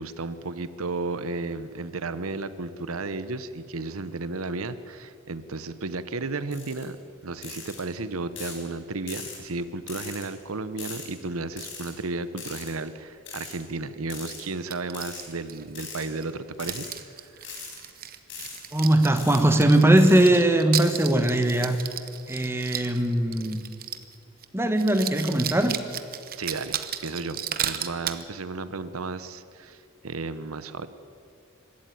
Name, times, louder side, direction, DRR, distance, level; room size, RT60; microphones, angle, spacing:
voice 1, 0.0-7.0 7.2-16.9 17.3-17.6 26.4-26.8 27.0-30.9, right 3 dB, 90° right, 13 dB, 0.9 m, -33 dB
sound 1, 6.5-6.8 7.4-7.8 8.4-8.6 9.1-9.4 9.9-10.3 10.8-11.1 11.6-11.9 12.4-12.7 13.3-13.5 14.1-14.4 14.9-15.2 15.8-16.1 16.5-16.9 17.4-17.8 18.3-18.6 19.2-19.4 20.0-20.3 20.8-21.1 21.6-21.8, left 5 dB, 60° left, 5.1 m, -40 dB
sound 2, 14.7-16.3 16.6-24.1 24.4-24.5 24.8-28.2, right 10 dB, 45° right, 1.0 m, -34 dB
voice 2, 18.7-21.8 22.3-23.6 24.5-25.8, right 1 dB, 10° right, 7 dB, 1.3 m, -20 dB
24.5 x 13.0 x 9.3 m, 2.6 s
head